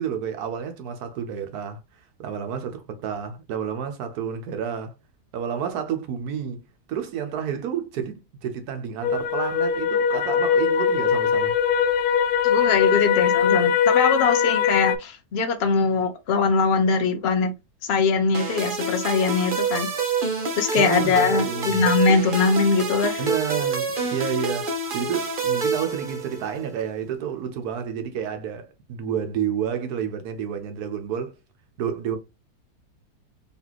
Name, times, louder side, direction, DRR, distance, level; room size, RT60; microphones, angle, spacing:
voice 1, 0.0-1.8 2.2-4.9 5.3-6.6 6.9-11.5 20.8-21.8 23.2-31.3 31.8-32.2, right 8 dB, 70° right, 1.3 m, -30 dB
sound 1, 9.0-15.0, left 7 dB, 70° left, 1.1 m, -21 dB
voice 2, 12.4-17.5 17.8-19.9 20.6-23.2, left 4 dB, 45° left, 0.9 m, -22 dB
sound 2, 18.3-26.6, right 3 dB, 40° right, 0.9 m, -27 dB
4.2 x 3.2 x 2.9 m
omnidirectional pair, 1.8 m